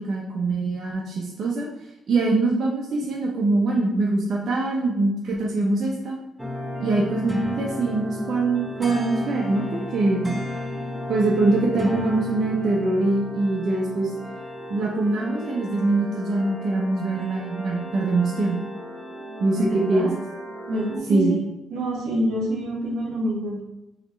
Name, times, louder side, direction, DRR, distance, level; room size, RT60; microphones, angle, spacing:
voice 1, 0.0-1.7 2.1-6.2 6.8-10.4 11.1-14.1 14.7-18.6 19.4-20.1 21.1-21.3, right 2 dB, 55° right, -3 dB, 0.7 m, -23 dB
sound 1, 6.4-21.0, left 1 dB, 5° right, 0.7 m, -34 dB
voice 2, 19.6-20.1 20.7-21.4 21.7-23.6, right 1 dB, 85° right, -2 dB, 1.2 m, -26 dB
4.2 x 3.0 x 3.8 m, 0.95 s
cardioid pair, 90°, 0 cm